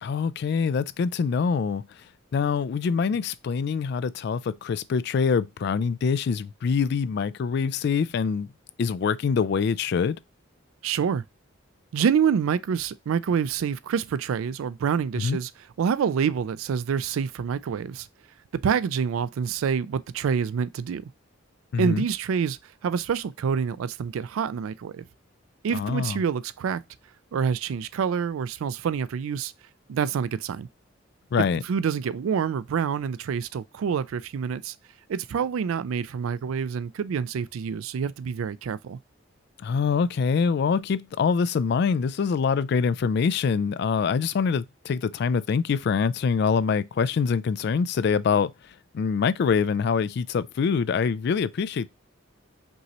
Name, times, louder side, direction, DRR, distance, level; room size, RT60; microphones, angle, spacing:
voice 1, 0.0-1.9 2.3-8.5 8.8-10.2 15.2-15.4 21.7-22.0 25.7-26.2 31.3-31.6 39.6-48.5 48.9-51.9, left 6 dB, 55° left, 0.3 m, -24 dB
voice 2, 10.8-11.2 11.9-15.5 15.8-18.1 18.5-21.1 21.8-22.6 22.8-25.0 25.6-26.8 27.3-29.5 29.9-30.7 31.6-34.7 35.1-39.0, right 7 dB, 90° right, 0.3 m, -27 dB
5.3 x 3.0 x 2.9 m
head